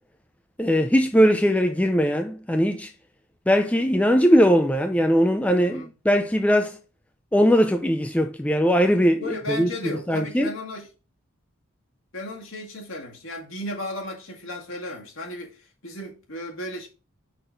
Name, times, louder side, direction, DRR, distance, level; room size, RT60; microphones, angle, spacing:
voice 1, 0.6-2.9 3.5-6.8 7.3-9.7 10.1-10.5, equal, 5° left, 0.5 m, -20 dB
voice 2, 5.6-5.9 9.2-10.9 12.1-16.9, left 1 dB, 65° left, 1.9 m, -35 dB
6.0 x 4.1 x 5.1 m
head